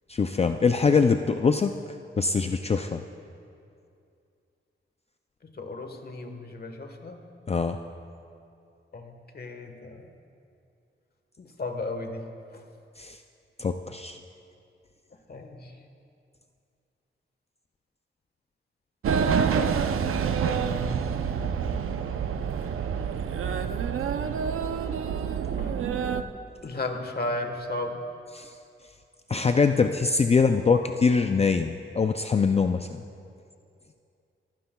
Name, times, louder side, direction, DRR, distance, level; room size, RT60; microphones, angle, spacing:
voice 1, 0.1-1.8 2.2-3.0 7.5-7.8 13.0-13.2 13.6-14.2 28.3-28.5 29.3-33.0, left 5 dB, 30° left, 7 dB, 0.4 m, -23 dB
voice 2, 5.6-7.2 8.9-10.1 11.4-12.6 15.3-15.7 19.5-21.1 24.4-24.9 25.6-25.8 26.6-28.0 30.6-30.8, left 2 dB, 50° left, 5 dB, 1.3 m, -36 dB
sound 1, 19.0-26.2, right 7 dB, 85° right, 0.6 m, -27 dB
25.5 x 15.0 x 2.3 m, 2.5 s
wide cardioid pair, 115°, 21 cm